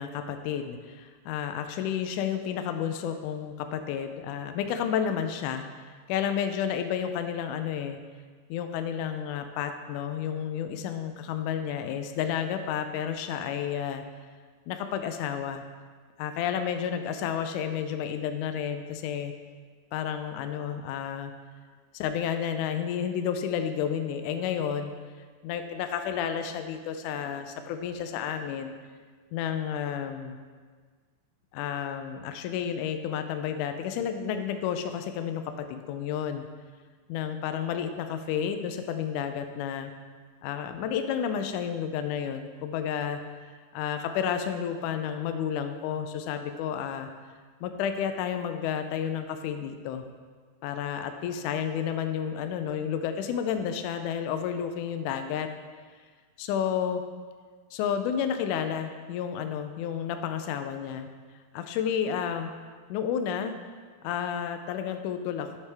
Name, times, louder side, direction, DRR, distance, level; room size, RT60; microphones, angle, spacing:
voice 1, 0.0-5.7 6.1-8.0 8.5-14.0 14.7-15.6 16.2-19.3 19.9-21.3 21.9-24.9 25.4-28.7 29.3-30.4 31.5-36.5 37.1-39.9 40.4-43.2 43.7-47.1 47.6-50.0 50.6-55.5 56.4-57.0 57.7-61.1 61.5-62.5 62.9-63.6 64.0-65.6, left 8 dB, 80° left, 8 dB, 1.9 m, -31 dB
8.4 x 8.3 x 3.4 m, 1.6 s
omnidirectional pair, 4.0 m